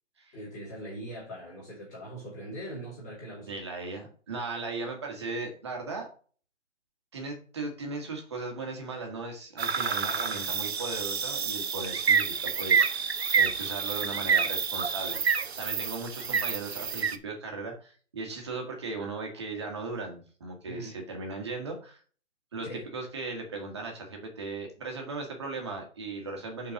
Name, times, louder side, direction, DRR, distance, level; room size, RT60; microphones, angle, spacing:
voice 1, 0.3-3.6 20.6-20.9 22.7-22.9, right 1 dB, 15° left, -7 dB, 2.2 m, -41 dB
voice 2, 3.4-6.1 7.1-22.0 22.5-22.7 22.9-26.7, right 3 dB, 25° right, 2 dB, 1.5 m, -37 dB
sound 1, 9.6-17.2, right 6 dB, 60° right, 0.9 m, -28 dB
5.4 x 4.5 x 6.3 m, 0.42 s
hypercardioid pair, 180°, 36 cm